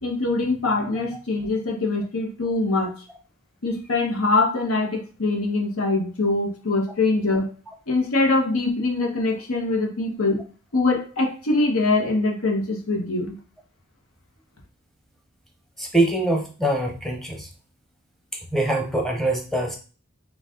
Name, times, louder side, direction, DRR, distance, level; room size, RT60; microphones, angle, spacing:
voice 1, 0.0-2.9 3.6-7.5 7.9-10.4 10.7-13.4, left 2 dB, 85° left, 2 dB, 1.1 m, -23 dB
voice 2, 15.8-17.5 18.5-19.8, right 1 dB, ahead, 1 dB, 0.7 m, -23 dB
4.0 x 2.4 x 3.7 m, 0.37 s
head